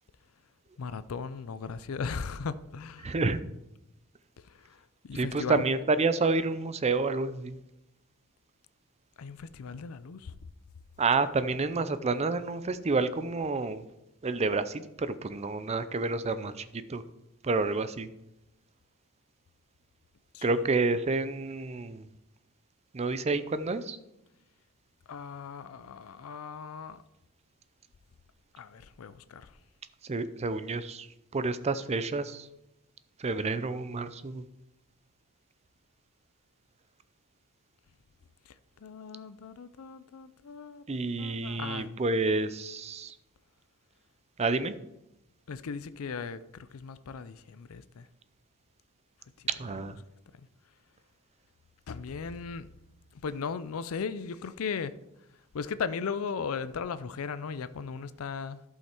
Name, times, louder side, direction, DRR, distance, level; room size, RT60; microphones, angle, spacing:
voice 1, 0.8-3.1 4.6-4.8 5.0-5.6 9.2-10.3 20.3-20.5 25.1-27.0 28.5-29.5 38.8-40.8 41.2-42.0 45.5-48.1 51.9-52.7 53.2-54.9 55.5-58.6, left 5 dB, 70° left, 0.5 m, -37 dB
voice 2, 3.0-3.4 5.1-7.6 11.0-13.8 14.2-16.6 16.9-17.0 17.4-18.1 20.4-22.0 22.9-24.0 30.1-31.1 31.3-32.5 33.2-34.4 40.9-43.1 44.4-44.7 49.6-49.9, right 3 dB, 30° right, 0.5 m, -29 dB
11.5 x 5.6 x 4.4 m
head